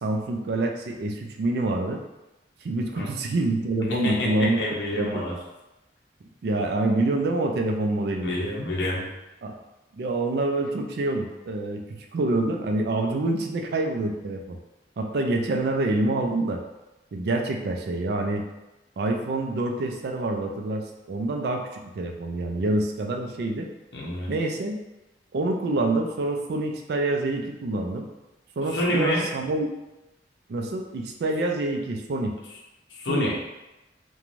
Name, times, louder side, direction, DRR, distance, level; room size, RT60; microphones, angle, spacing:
voice 1, 0.0-2.0 2.6-4.6 5.0-5.2 6.4-8.4 9.4-9.6 9.9-14.6 15.0-16.6 17.1-18.5 19.0-23.7 24.3-24.8 25.3-28.1 28.6-29.7 30.5-32.4 33.1-33.3, right 2 dB, 65° right, 3 dB, 0.4 m, -26 dB
voice 2, 3.9-5.4 8.2-9.1 23.9-24.3 28.7-29.3 33.0-33.4, left 1 dB, 75° left, -3 dB, 0.6 m, -27 dB
2.5 x 2.2 x 3.0 m, 0.99 s
head